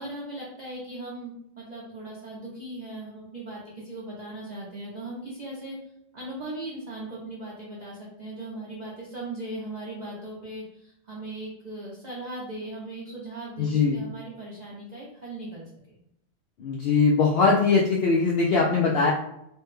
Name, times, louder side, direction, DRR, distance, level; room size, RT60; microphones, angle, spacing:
voice 1, 0.0-5.8 6.1-15.7, right 2 dB, 45° right, -5 dB, 0.6 m, -38 dB
voice 2, 13.6-14.0 16.6-19.1, left 4 dB, 65° left, -3 dB, 0.7 m, -21 dB
3.2 x 2.1 x 3.1 m, 0.78 s
omnidirectional pair, 1.3 m